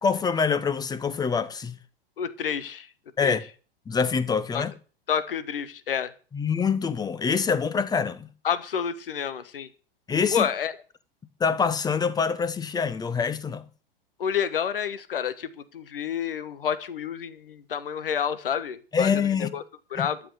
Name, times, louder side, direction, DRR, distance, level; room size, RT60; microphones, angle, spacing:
voice 1, 0.0-1.8 3.2-3.4 3.9-4.7 6.3-8.3 10.1-10.5 11.4-13.7 18.9-19.5 19.9-20.1, left 6 dB, 15° left, 1.0 m, -25 dB
voice 2, 2.2-2.9 3.2-3.4 4.5-4.6 5.1-6.1 8.4-9.7 10.3-10.7 14.2-19.1 19.4-19.6 19.9-20.2, left 8 dB, 65° left, 1.4 m, -29 dB
12.5 x 8.1 x 8.0 m
figure-of-eight pair, 100°, 29 cm